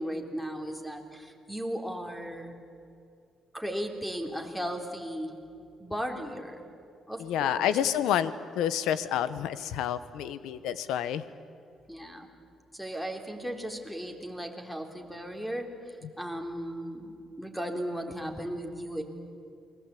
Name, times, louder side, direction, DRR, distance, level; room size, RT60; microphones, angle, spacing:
voice 1, 0.0-2.5 3.5-5.4 5.8-6.6 7.1-7.8 11.9-12.3 12.7-15.7 16.2-19.0, equal, 5° left, 4 dB, 3.6 m, -36 dB
voice 2, 7.2-11.2, left 10 dB, 90° left, 14 dB, 1.1 m, -29 dB
29.0 x 21.5 x 8.5 m, 2.5 s
cardioid pair, 90°, 0 cm